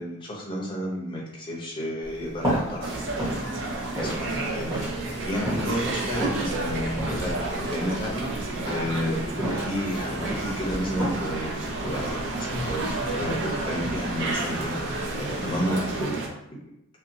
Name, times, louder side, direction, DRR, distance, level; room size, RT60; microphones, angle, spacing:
voice 1, 0.0-3.4 3.7-4.8 5.3-8.3 8.7-14.7 15.1-16.2, equal, 25° left, -3 dB, 0.6 m, -31 dB
sound 1, 2.0-16.1, equal, 15° right, 1.0 m, -34 dB
sound 2, 2.8-16.3, right 2 dB, 60° right, 0.5 m, -31 dB
2.6 x 2.3 x 2.5 m, 0.83 s
head